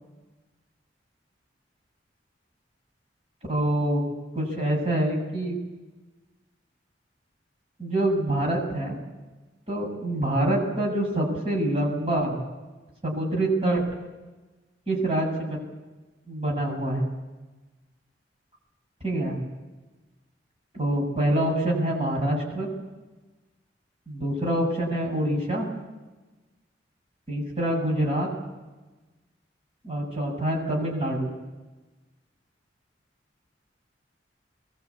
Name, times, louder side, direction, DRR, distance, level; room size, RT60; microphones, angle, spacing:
voice 1, 3.5-4.0 4.4-5.6 7.8-9.0 9.7-12.4 13.0-13.8 14.9-15.6 16.3-17.1 19.0-19.4 20.7-22.7 24.1-25.7 27.3-28.3 29.8-31.3, right 1 dB, 35° right, -2 dB, 7.2 m, -26 dB
23.5 x 21.5 x 8.5 m, 1.2 s
head